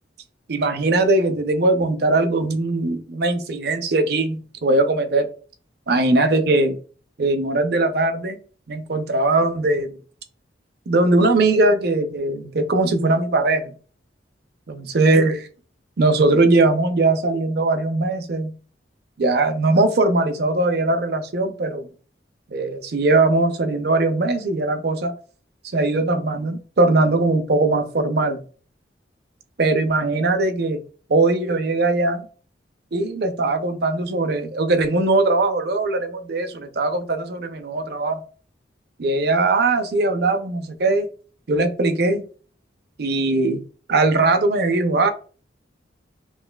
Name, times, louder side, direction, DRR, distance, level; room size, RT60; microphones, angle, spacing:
voice 1, 0.5-5.3 5.9-6.8 7.2-8.4 8.7-10.0 10.9-13.7 14.7-15.4 16.0-18.5 19.2-21.9 22.5-25.1 25.7-28.4 29.6-30.8 31.1-32.3 32.9-38.2 39.0-41.1 41.5-42.2 43.0-43.6 43.9-45.1, right 2 dB, 60° right, 8 dB, 0.6 m, -20 dB
5.5 x 2.5 x 2.2 m, 0.40 s
head